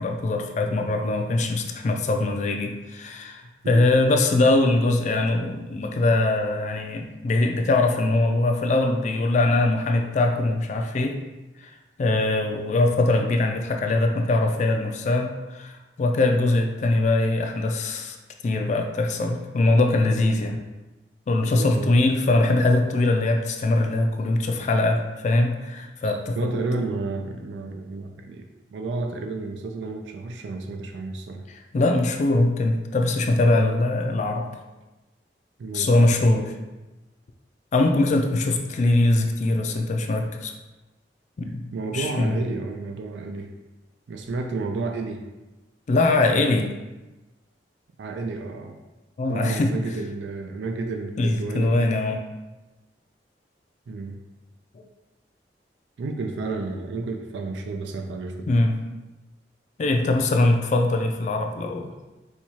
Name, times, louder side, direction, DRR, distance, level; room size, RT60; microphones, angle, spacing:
voice 1, 0.0-11.2 12.0-15.7 16.0-18.2 18.4-20.6 21.3-26.5 31.5-34.5 35.7-36.5 37.7-40.5 41.4-42.4 45.9-46.7 49.2-49.7 51.2-52.2 58.5-58.8 59.8-61.9, left 2 dB, 40° left, 4 dB, 0.3 m, -22 dB
voice 2, 21.6-22.0 24.6-24.7 26.0-31.5 35.6-36.1 41.7-43.5 44.1-45.2 48.0-48.8 49.3-51.9 53.9-54.2 56.0-58.4, right 3 dB, 85° right, 3 dB, 0.4 m, -31 dB
4.4 x 2.3 x 2.8 m, 1.1 s
head